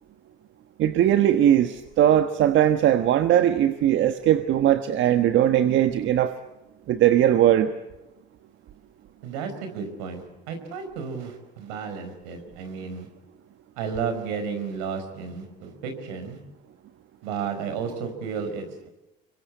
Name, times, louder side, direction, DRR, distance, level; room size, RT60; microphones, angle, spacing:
voice 1, 0.8-6.3 6.9-7.7, right 11 dB, 65° right, 9 dB, 1.4 m, -19 dB
voice 2, 9.2-13.1 13.8-16.4 17.2-18.9, right 6 dB, 85° right, 6 dB, 4.9 m, -33 dB
25.0 x 23.5 x 8.5 m, 0.97 s
supercardioid pair, 70°, 21 cm